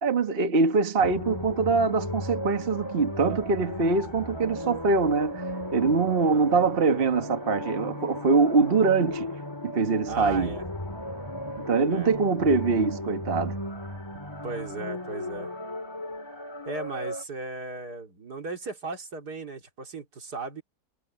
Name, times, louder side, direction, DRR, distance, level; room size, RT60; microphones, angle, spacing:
voice 1, 0.0-9.3 9.6-10.5 11.6-13.6, right 4 dB, 35° right, 1.5 m, -24 dB
sound 1, 1.0-17.2, left 1 dB, 15° left, 2.4 m, -35 dB
voice 2, 6.3-6.7 10.0-10.6 11.9-12.1 14.4-15.5 16.6-20.6, right 3 dB, 70° right, 3.4 m, -36 dB
omnidirectional pair, 1.8 m